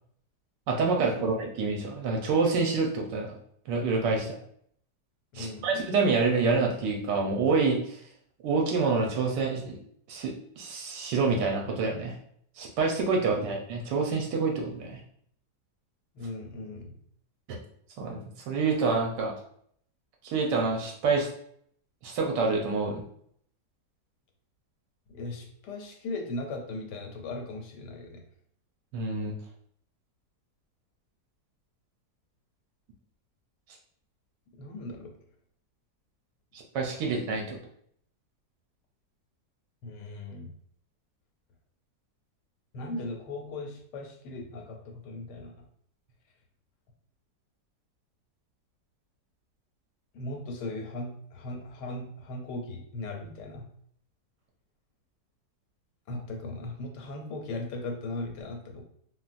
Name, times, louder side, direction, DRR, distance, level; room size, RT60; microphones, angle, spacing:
voice 1, 0.7-3.4 3.7-4.4 5.3-8.0 8.4-9.8 10.1-12.2 12.6-15.0 17.5-17.6 18.0-18.2 18.5-19.3 20.2-21.3 22.0-23.0 28.9-29.3 36.5-37.6, right 4 dB, 85° right, 0 dB, 1.3 m, -27 dB
voice 2, 5.3-5.7 13.3-13.4 16.1-16.9 25.1-28.2 34.6-35.1 39.8-40.5 42.7-45.5 50.1-53.7 56.1-58.8, left 2 dB, 85° left, 2 dB, 1.3 m, -38 dB
3.9 x 2.1 x 2.5 m, 0.65 s
omnidirectional pair, 1.8 m